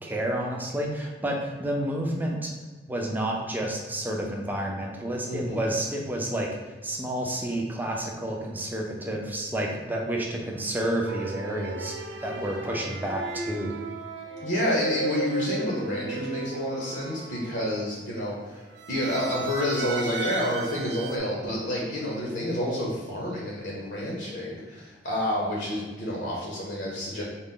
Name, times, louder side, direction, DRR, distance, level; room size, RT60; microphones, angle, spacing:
voice 1, 0.0-2.5 2.9-6.5 6.8-13.7, right 1 dB, 10° right, -1 dB, 0.5 m, -30 dB
voice 2, 5.3-5.6 14.4-27.2, left 1 dB, 70° left, -4 dB, 0.8 m, -29 dB
sound 1, 11.1-18.1 18.8-21.2, right 4 dB, 75° right, 0.5 m, -35 dB
3.9 x 2.1 x 3.7 m, 1.3 s
head